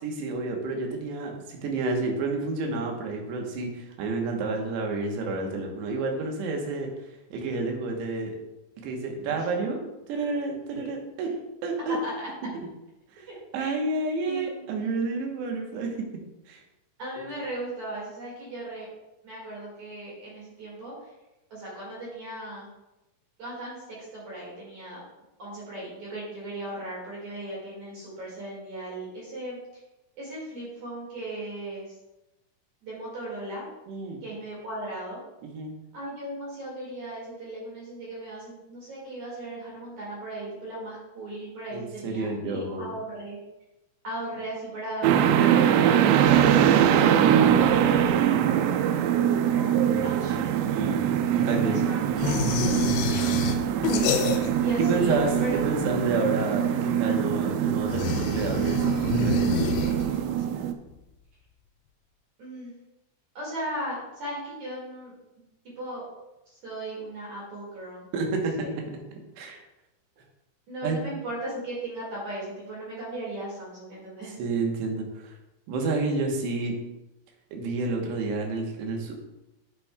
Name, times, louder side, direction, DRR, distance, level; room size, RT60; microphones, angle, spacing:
voice 1, 0.0-6.9 7.3-8.3 8.8-9.8 10.1-11.3 11.6-12.0 13.2-13.3 13.5-15.9 16.5-16.6 17.2-17.3 33.9-34.2 35.4-35.7 41.7-42.9 50.7-51.1 51.3-51.8 53.3-53.6 54.8-59.6 68.1-68.8 69.4-69.6 70.8-71.0 74.4-75.3 75.7-76.7 77.5-79.2, right 3 dB, 70° right, 1 dB, 2.9 m, -30 dB
voice 2, 13.3-13.7 14.2-14.8 17.0-18.9 19.2-21.1 21.5-22.7 23.4-25.1 25.4-29.6 30.2-31.9 32.8-33.7 34.2-35.2 35.9-43.4 44.0-48.6 49.4-50.9 51.5-52.4 53.0-53.6 54.6-55.7 62.4-62.7 63.3-65.1 65.6-66.0 66.5-68.0 68.6-68.7 70.7-74.4, right 1 dB, 45° right, -5 dB, 2.6 m, -37 dB
sound 1, 45.0-60.7, right 9 dB, 90° right, 3.2 m, -23 dB
sound 2, 52.2-54.8 55.0-55.8 57.8-60.4, left 5 dB, 85° left, 3.2 m, -28 dB
8.3 x 8.2 x 2.3 m, 0.96 s
omnidirectional pair, 5.8 m